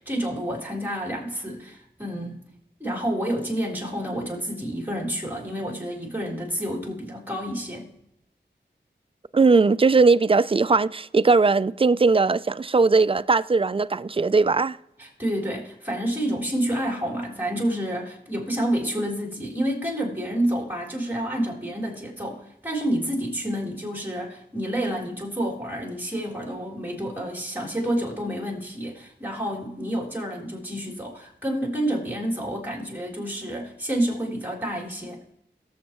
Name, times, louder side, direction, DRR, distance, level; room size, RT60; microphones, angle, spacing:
voice 1, 0.0-2.4 2.8-7.9 15.0-35.2, equal, 10° right, 3.7 m, -29 dB
voice 2, 9.3-14.8, right 4 dB, 30° right, 0.4 m, -19 dB
18.0 x 7.3 x 3.0 m
cardioid pair, 50°, 19 cm